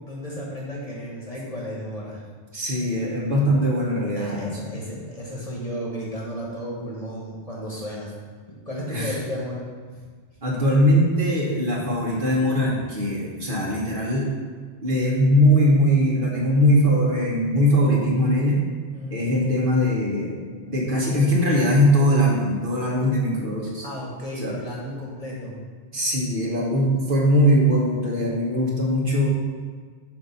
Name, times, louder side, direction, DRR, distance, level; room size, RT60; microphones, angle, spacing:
voice 1, 0.0-2.2 3.3-3.4 4.1-8.1 8.5-9.7 9.9-10.0 18.9-19.2 23.8-25.7, equal, 35° left, -4 dB, 1.1 m, -33 dB
voice 2, 2.5-4.7 8.9-9.2 10.4-14.3 14.8-18.6 19.1-20.4 20.7-23.8 24.4-24.6 25.9-29.3, equal, 55° right, -4 dB, 1.4 m, -21 dB
7.4 x 2.7 x 5.5 m, 1.6 s
omnidirectional pair, 1.1 m